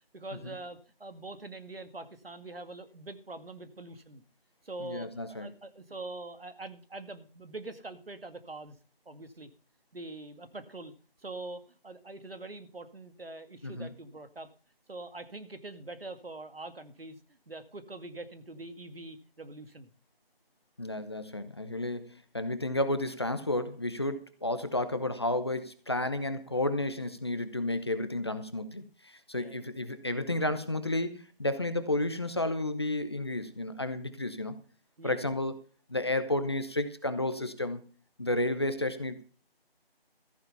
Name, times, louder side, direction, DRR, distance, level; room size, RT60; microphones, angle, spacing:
voice 1, 0.1-4.2 4.6-8.7 9.1-9.5 9.9-10.9 11.2-14.5 14.9-17.2 17.5-19.9 29.3-29.6 35.0-35.3, right 2 dB, 70° right, 10 dB, 2.4 m, -44 dB
voice 2, 4.8-5.5 13.6-13.9 20.8-34.6 35.0-35.5 35.9-37.8 38.2-39.2, left 1 dB, 25° left, 10 dB, 1.0 m, -32 dB
14.5 x 9.0 x 5.6 m, 0.39 s
figure-of-eight pair, 170°, 30 cm